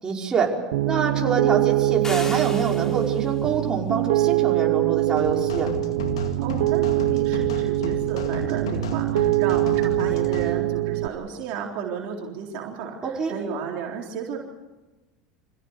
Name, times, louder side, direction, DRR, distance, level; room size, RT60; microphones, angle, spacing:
voice 1, 0.0-0.5 0.9-5.8 13.0-13.3, right 5 dB, 25° right, -1 dB, 5.4 m, -25 dB
Piano, 0.7-11.1, right 17 dB, 80° right, 1.0 m, -23 dB
sound 1, 2.0-3.3, left 2 dB, 20° left, 4.7 m, -36 dB
sound 2, 5.2-10.5, left 5 dB, 85° left, 2.2 m, -34 dB
voice 2, 6.4-14.4, right 7 dB, 60° right, 0 dB, 4.0 m, -33 dB
26.5 x 17.0 x 8.3 m, 1.1 s
hypercardioid pair, 85°, 3 cm